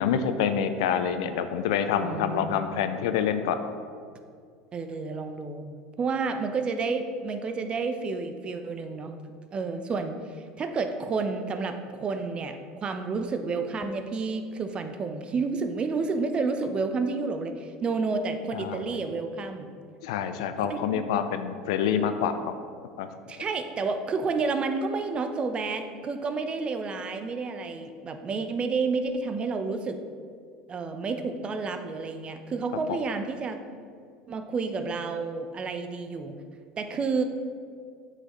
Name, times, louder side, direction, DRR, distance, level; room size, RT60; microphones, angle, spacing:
voice 1, 0.0-3.6 18.5-18.8 20.0-22.5 23.0-23.1, left 8 dB, 75° left, 9 dB, 0.5 m, -27 dB
voice 2, 2.0-2.4 4.7-5.6 6.0-9.1 9.5-10.2 10.6-12.6 12.8-19.7 20.6-21.0 23.3-30.0 30.7-33.6 34.3-36.4 36.8-37.2, right 4 dB, 35° right, 7 dB, 0.7 m, -30 dB
8.3 x 5.6 x 3.1 m, 2.2 s
hypercardioid pair, 85°, 3 cm